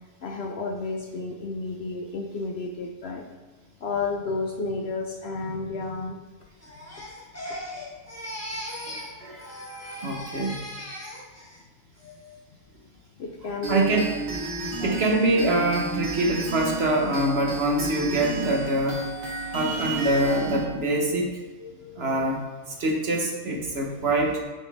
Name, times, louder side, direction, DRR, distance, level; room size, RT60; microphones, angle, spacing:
voice 1, 0.2-3.2 3.8-6.2 6.9-7.0 9.2-10.1 13.2-14.0 14.8-14.9 21.6-22.3, left 3 dB, 60° left, 2 dB, 0.7 m, -32 dB
Crying sobbing, 6.6-9.1 9.4-11.6 12.0-12.4, equal, 10° left, 1.0 m, -38 dB
voice 2, 8.9-9.4 10.0-10.6 13.7-14.1 14.8-19.1 19.5-21.4 22.0-22.4 22.8-24.4, right 1 dB, 50° right, 0 dB, 1.2 m, -24 dB
sound 1, 13.6-20.7, right 3 dB, 85° right, 1.9 m, -32 dB
8.4 x 4.1 x 3.4 m, 1.3 s
omnidirectional pair, 1.4 m